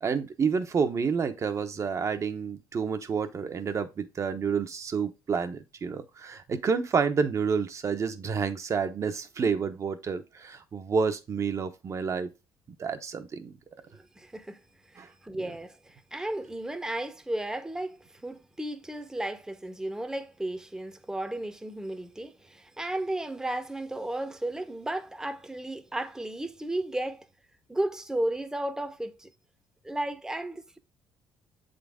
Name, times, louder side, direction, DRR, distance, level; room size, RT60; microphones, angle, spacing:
voice 1, 0.0-12.3 12.8-13.5 15.0-15.1, right 5 dB, 40° right, 0.9 m, -29 dB
voice 2, 13.9-14.6 14.9-27.3 27.7-29.3 29.8-30.8, right 1 dB, 5° right, 0.9 m, -34 dB
7.6 x 3.9 x 3.6 m
cardioid pair, 105°, 8 cm